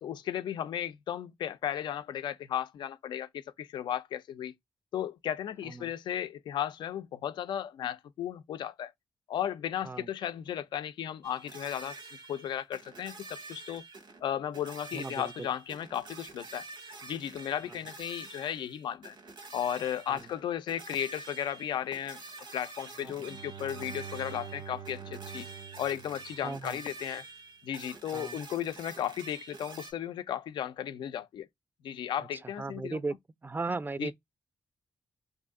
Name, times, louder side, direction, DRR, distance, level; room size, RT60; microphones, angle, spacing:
voice 1, 0.0-4.5 4.9-8.9 9.3-12.0 12.3-13.8 14.2-16.6 17.0-19.2 19.5-22.2 22.5-25.5 25.8-27.2 27.6-31.5 31.8-33.0 34.0-34.1, left 10 dB, 80° left, 0.4 m, -35 dB
sound 1, 11.2-14.2 14.5-29.9, right 3 dB, 80° right, 1.0 m, -48 dB
voice 2, 14.9-15.5 20.1-20.2 23.0-23.2 26.4-26.8 28.1-28.4 32.6-33.2 33.4-34.1, right 3 dB, 25° right, 0.4 m, -36 dB
Bowed string instrument, 23.1-26.9, right 8 dB, 65° right, 0.7 m, -45 dB
2.6 x 2.5 x 3.6 m
supercardioid pair, 45°, 8 cm